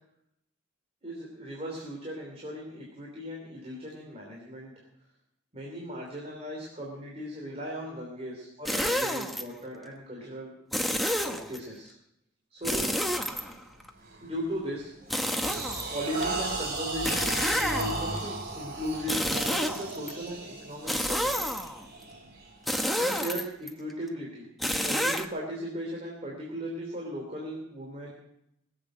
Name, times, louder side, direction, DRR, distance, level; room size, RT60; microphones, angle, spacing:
voice 1, 1.0-4.7 5.5-10.5 11.3-11.9 12.5-12.9 14.2-14.9 15.9-21.5 23.0-24.5 24.8-28.1, equal, 35° right, -3 dB, 3.2 m, -37 dB
sound 1, 8.7-9.4 10.7-11.6 12.6-13.9 15.1-16.3 17.0-18.2 19.0-20.1 20.9-21.8 22.7-23.7 24.6-25.3, equal, ahead, 0.9 m, -29 dB
sound 2, 13.3-13.5 14.0-14.3 14.8-22.9, right 2 dB, 50° right, 3.1 m, -36 dB
21.0 x 8.0 x 6.3 m, 0.79 s
head